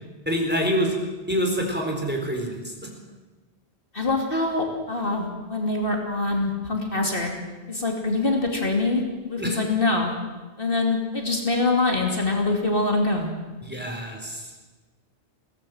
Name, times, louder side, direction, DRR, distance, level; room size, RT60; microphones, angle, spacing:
voice 1, 0.3-1.0 1.3-2.9 9.4-9.6 13.6-14.5, equal, 10° right, 1 dB, 4.1 m, -26 dB
voice 2, 3.9-7.4 7.7-9.0 9.3-10.2 10.6-13.3, left 2 dB, 55° left, 1 dB, 2.9 m, -24 dB
21.5 x 17.5 x 7.9 m, 1.2 s
omnidirectional pair, 1.1 m